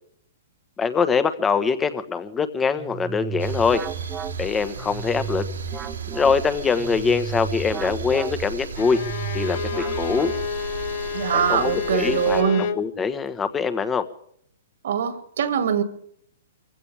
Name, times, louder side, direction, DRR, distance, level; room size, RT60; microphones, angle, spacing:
voice 1, 0.8-3.8 4.4-5.5 6.1-9.0 9.3-10.3 11.3-14.1, left 5 dB, 15° left, 12 dB, 1.3 m, -23 dB
sound 1, 2.8-10.8, right 7 dB, 20° right, 0.9 m, -33 dB
sound 2, 3.4-12.4, right 4 dB, 90° right, 3.0 m, -36 dB
Bowed string instrument, 8.7-12.9, left 7 dB, 50° left, 0.9 m, -30 dB
voice 2, 11.1-12.7 14.8-15.8, right 7 dB, 70° right, 9 dB, 2.4 m, -23 dB
24.0 x 16.0 x 3.5 m, 0.66 s
hypercardioid pair, 140°, 0 cm